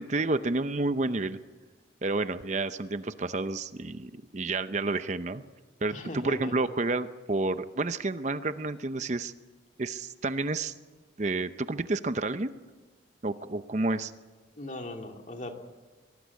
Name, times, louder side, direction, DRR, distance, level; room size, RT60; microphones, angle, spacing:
voice 1, 0.0-1.4 2.0-5.4 5.8-9.3 9.8-10.7 11.2-12.5 13.2-14.1, right 2 dB, 40° right, 11 dB, 0.7 m, -30 dB
voice 2, 5.9-6.7 14.6-15.7, left 1 dB, 40° left, 3 dB, 2.3 m, -39 dB
24.5 x 19.0 x 8.3 m, 1.3 s
head